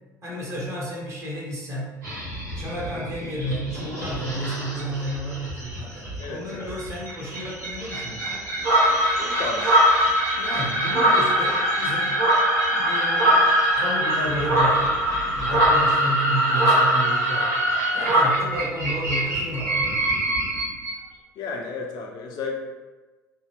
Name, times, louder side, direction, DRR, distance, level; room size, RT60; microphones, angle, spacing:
voice 1, 0.2-2.0 2.5-8.4 10.4-12.2 12.7-13.5 13.8-15.0 15.3-17.6 17.9-20.1, equal, 30° right, -5 dB, 1.2 m, -31 dB
sound 1, 2.0-21.0, right 1 dB, 75° right, 1.4 m, -27 dB
voice 2, 6.2-6.7 9.2-9.8 21.4-22.6, left 4 dB, 45° left, 0 dB, 0.4 m, -33 dB
sound 2, 8.6-18.2, right 1 dB, 60° right, 0.8 m, -22 dB
2.7 x 2.3 x 3.3 m, 1.2 s
figure-of-eight pair, 60°, 10 cm